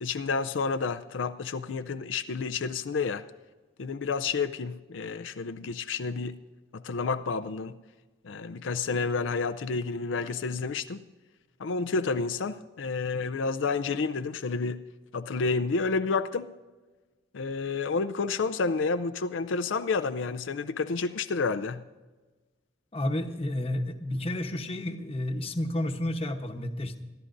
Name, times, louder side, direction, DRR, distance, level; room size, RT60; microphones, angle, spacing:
voice 1, 0.0-3.2 3.8-6.4 6.7-7.8 8.2-11.0 11.6-14.8 15.1-16.5 17.3-21.8, left 4 dB, 85° left, 0.5 m, -30 dB
voice 2, 22.9-27.0, left 1 dB, 30° left, 1.0 m, -31 dB
25.5 x 12.5 x 2.6 m
head